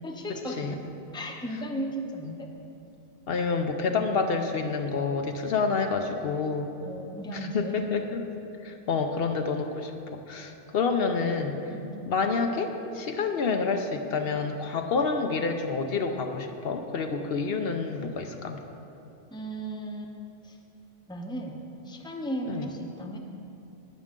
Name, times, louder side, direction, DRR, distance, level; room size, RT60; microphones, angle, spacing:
voice 1, 0.0-0.8 1.1-2.5 6.8-7.8 11.7-11.9 19.3-20.1 20.4-20.6 21.1-23.2, right 1 dB, 5° left, 1 dB, 0.7 m, -35 dB
voice 2, 3.3-6.7 7.3-8.3 8.6-11.5 12.0-18.6 22.5-22.7, left 4 dB, 70° left, 5 dB, 0.9 m, -28 dB
18.5 x 6.3 x 3.7 m, 2.9 s
omnidirectional pair, 1.1 m